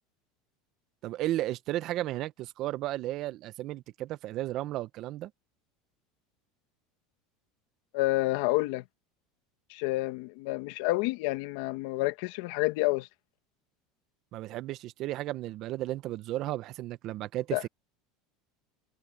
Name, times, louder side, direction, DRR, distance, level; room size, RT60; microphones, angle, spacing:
voice 1, 1.0-5.3 14.3-17.7, right 15 dB, 50° right, 0.9 m, -34 dB
voice 2, 7.9-8.8 9.7-13.1 17.5-17.6, left 20 dB, 70° left, 1.8 m, -29 dB
supercardioid pair, 125°, 0 cm